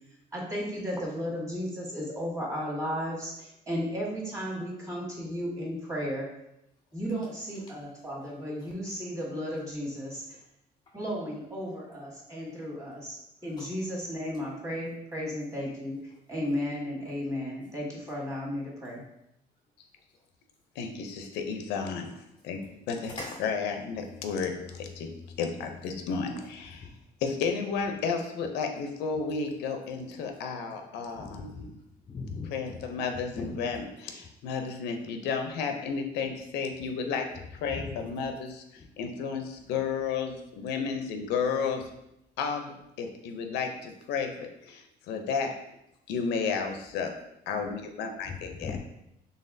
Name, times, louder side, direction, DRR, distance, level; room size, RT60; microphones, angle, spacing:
voice 1, 0.3-6.3 6.9-10.4 10.9-19.0, equal, 20° right, -4 dB, 1.5 m, -34 dB
voice 2, 20.8-22.1 22.4-23.1 23.4-25.1 25.4-26.9 27.2-31.6 32.5-37.3 37.5-41.9 42.4-45.5 46.1-47.1 47.5-48.7, left 5 dB, 85° left, 5 dB, 0.5 m, -32 dB
voice 3, 23.0-23.4 24.1-24.3 24.7-25.4 26.4-27.0 29.1-29.2 31.1-32.8 33.3-33.8 37.7-38.1 38.8-38.9 40.6-40.7 48.2-48.8, left 4 dB, 25° left, 1 dB, 0.4 m, -41 dB
4.0 x 3.4 x 2.6 m, 0.83 s
cardioid pair, 110°, 17 cm